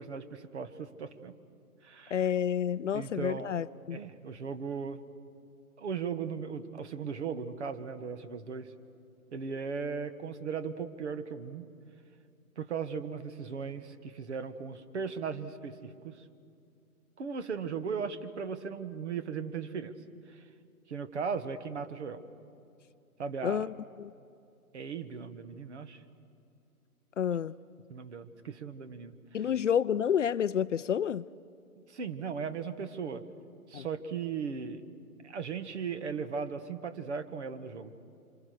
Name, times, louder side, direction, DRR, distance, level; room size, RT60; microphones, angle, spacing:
voice 1, 0.0-1.3 1.8-2.2 2.9-3.5 3.9-5.0 5.8-8.7 9.3-11.7 12.6-16.2 17.2-19.9 20.3-20.4 20.9-22.2 23.2-23.7 24.7-26.0 27.9-29.2 31.8-33.2 33.7-34.8 35.2-37.9, right 6 dB, 50° right, 1.6 m, -37 dB
voice 2, 2.1-4.0 23.4-24.1 27.2-27.6 29.3-31.3 33.7-33.9, left 8 dB, 55° left, 0.6 m, -29 dB
27.0 x 25.5 x 6.6 m
hypercardioid pair, 150°, 44 cm